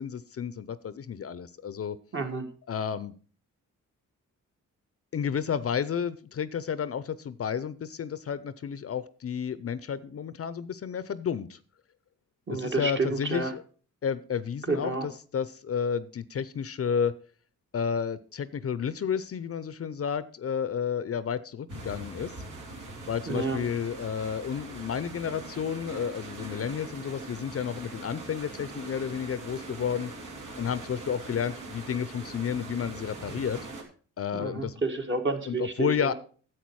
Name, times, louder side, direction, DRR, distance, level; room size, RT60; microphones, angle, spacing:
voice 1, 0.0-2.0 2.7-3.1 5.1-11.6 12.5-13.6 14.0-17.1 17.7-22.3 23.1-30.1 30.6-33.6 34.2-34.7 35.5-36.1, left 7 dB, 45° left, 16 dB, 0.6 m, -31 dB
voice 2, 2.1-2.5 12.5-13.5 14.7-15.1 23.3-23.6 34.3-36.1, right 3 dB, 40° right, 4 dB, 1.8 m, -30 dB
sound 1, 21.7-33.8, right 2 dB, 70° right, 2.6 m, -42 dB
10.5 x 7.9 x 4.7 m, 0.40 s
cardioid pair, 95°, 31 cm